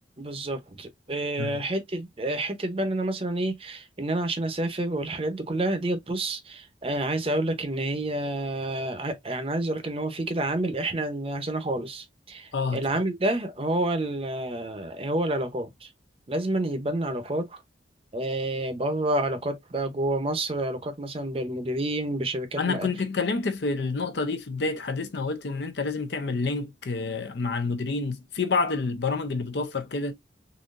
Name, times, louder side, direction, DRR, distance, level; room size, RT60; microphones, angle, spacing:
voice 1, 0.2-15.9 16.3-17.6 18.1-22.9, right 1 dB, 30° right, 0.7 m, -29 dB
voice 2, 12.5-12.8 22.6-30.1, left 4 dB, 65° left, 0.6 m, -28 dB
3.8 x 2.9 x 2.4 m
head